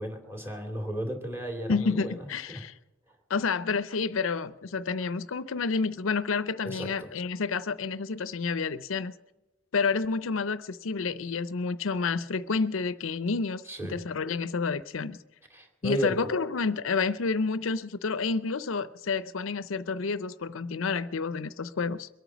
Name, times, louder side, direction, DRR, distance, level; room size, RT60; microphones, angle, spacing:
voice 1, 0.0-2.6 6.6-6.9 13.7-14.0 15.5-16.1, right 1 dB, 10° right, 2.5 m, -34 dB
voice 2, 1.7-2.7 3.3-9.1 9.7-13.6 13.9-15.2 15.8-22.1, left 4 dB, 75° left, 0.6 m, -29 dB
23.0 x 9.2 x 6.1 m
head